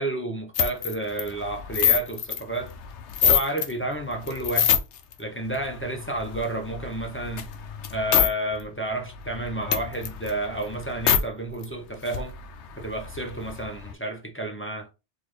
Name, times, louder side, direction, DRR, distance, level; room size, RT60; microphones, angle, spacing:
voice 1, 0.0-2.7 3.2-4.8 5.2-7.5 7.9-12.3 12.8-14.9, right 2 dB, 15° left, 0.4 m, -30 dB
sound 1, 0.5-3.7 4.1-5.1 5.5-8.3 8.6-8.7 9.0-11.2 11.6-11.7 11.9-13.9, left 8 dB, 75° left, 0.9 m, -26 dB
4.2 x 2.5 x 3.2 m
omnidirectional pair, 1.2 m